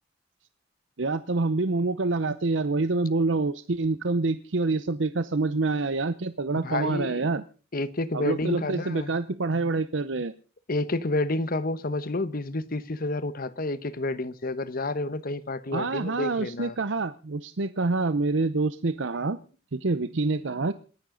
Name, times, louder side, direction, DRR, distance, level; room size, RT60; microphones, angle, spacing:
voice 1, 1.0-7.4 8.1-10.3 15.7-19.4 19.7-20.7, right 3 dB, 70° right, 0.7 m, -26 dB
voice 2, 6.6-7.3 7.7-9.1 10.7-16.7, left 2 dB, 50° left, 1.1 m, -30 dB
27.5 x 10.5 x 3.9 m
head